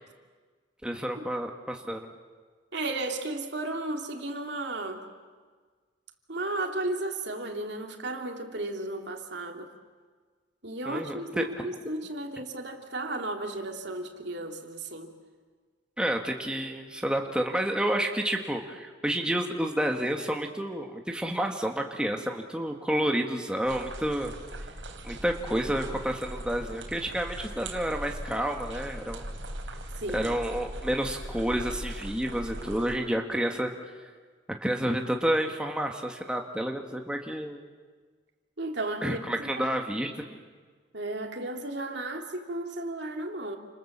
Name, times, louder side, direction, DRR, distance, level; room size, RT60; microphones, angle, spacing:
voice 1, 0.8-2.0 10.9-11.5 16.0-24.3 25.0-29.3 30.1-33.7 34.6-37.6 39.0-40.3, right 1 dB, 5° right, 2 dB, 1.7 m, -30 dB
voice 2, 2.7-5.0 6.3-9.7 10.6-15.1 30.0-30.3 38.6-39.7 40.9-43.6, right 2 dB, 65° right, 3 dB, 2.9 m, -34 dB
sound 1, 23.6-33.0, right 1 dB, 80° right, 3.6 m, -39 dB
29.5 x 27.5 x 7.4 m, 1.5 s
head